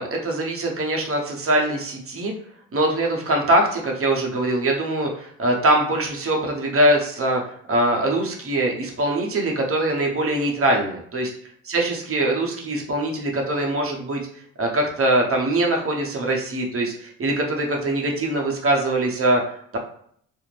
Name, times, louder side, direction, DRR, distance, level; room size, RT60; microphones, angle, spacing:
voice 1, 0.0-2.3 2.7-7.4 7.7-11.3 11.7-14.2 14.6-19.8, right 1 dB, 40° right, 0 dB, 0.8 m, -22 dB
2.5 x 2.0 x 3.1 m, 0.64 s
cardioid pair, 70°, 36 cm